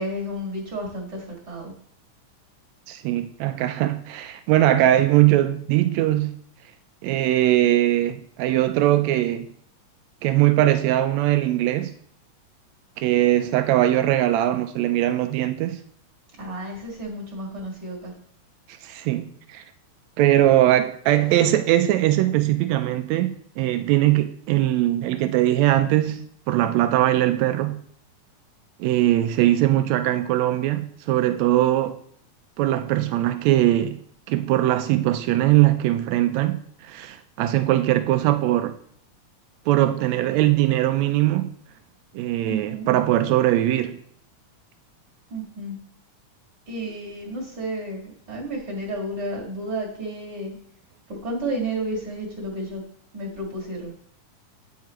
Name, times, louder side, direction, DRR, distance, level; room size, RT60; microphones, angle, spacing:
voice 1, 0.0-1.7 16.4-18.1 42.5-42.9 45.3-45.8 46.7-50.6 51.2-52.8 53.1-53.9, right 1 dB, 35° right, 2.0 m, -31 dB
voice 2, 2.9-6.3 7.0-9.5 10.2-11.9 13.0-15.8 18.8-19.6 20.2-27.8 28.8-32.0 32.6-34.0 34.3-38.7 39.7-41.5 42.1-44.0, right 14 dB, 90° right, 1.5 m, -21 dB
9.5 x 6.1 x 3.0 m
omnidirectional pair, 3.7 m